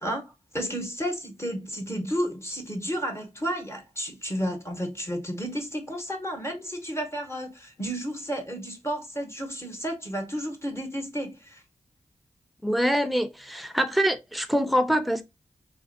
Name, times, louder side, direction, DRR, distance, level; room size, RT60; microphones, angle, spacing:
voice 1, 0.0-11.6, equal, 20° left, 0.9 m, -32 dB
voice 2, 12.6-15.2, equal, ahead, 0.5 m, -24 dB
3.3 x 2.4 x 2.5 m
wide cardioid pair, 60°, 12 cm